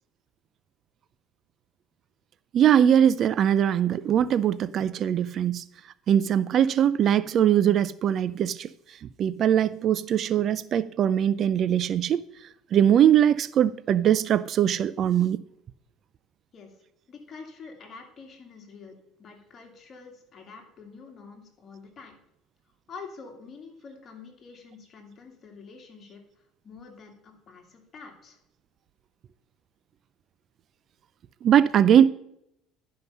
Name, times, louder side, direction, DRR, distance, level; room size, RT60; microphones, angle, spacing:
voice 1, 2.5-5.6 6.1-8.7 9.2-12.2 12.7-15.4 31.4-32.1, right 9 dB, 45° right, 0.3 m, -21 dB
voice 2, 17.1-22.2 22.9-26.2 26.6-28.4, left 4 dB, 35° left, 2.3 m, -46 dB
11.0 x 5.5 x 5.5 m
cardioid pair, 120°, 0 cm